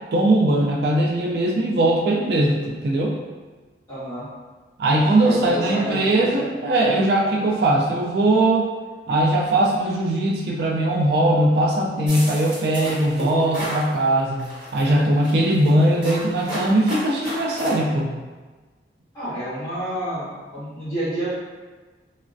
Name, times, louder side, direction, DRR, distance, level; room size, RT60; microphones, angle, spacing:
voice 1, 0.1-3.2 4.8-8.7 9.1-14.4 14.7-18.1, right 1 dB, 70° right, -2 dB, 0.4 m, -20 dB
voice 2, 3.9-4.3 5.2-6.3 19.1-21.3, right 1 dB, 20° left, -13 dB, 1.3 m, -29 dB
sound 1, 12.1-13.9 14.4-14.8 15.2-17.7, equal, 25° right, 1.1 m, -32 dB
3.2 x 2.1 x 2.5 m, 1.3 s
head